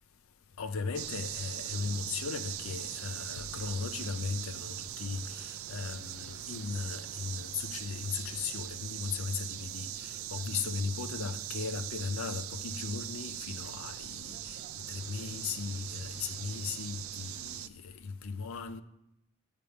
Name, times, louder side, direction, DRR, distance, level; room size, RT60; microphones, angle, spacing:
voice 1, 0.6-14.6 14.9-18.8, left 5 dB, 80° left, 0.5 m, -37 dB
sound 1, 0.9-17.7, right 12 dB, 85° right, 0.4 m, -41 dB
6.4 x 5.2 x 7.0 m
head